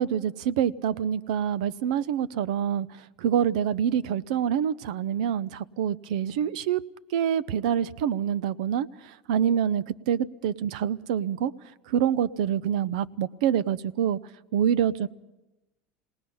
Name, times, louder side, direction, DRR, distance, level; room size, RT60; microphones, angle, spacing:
voice 1, 0.0-2.9 3.2-6.8 7.1-11.5 11.9-14.2 14.5-15.1, right 9 dB, 75° right, 0.6 m, -26 dB
28.5 x 19.0 x 5.5 m
cardioid pair, 175°, 4 cm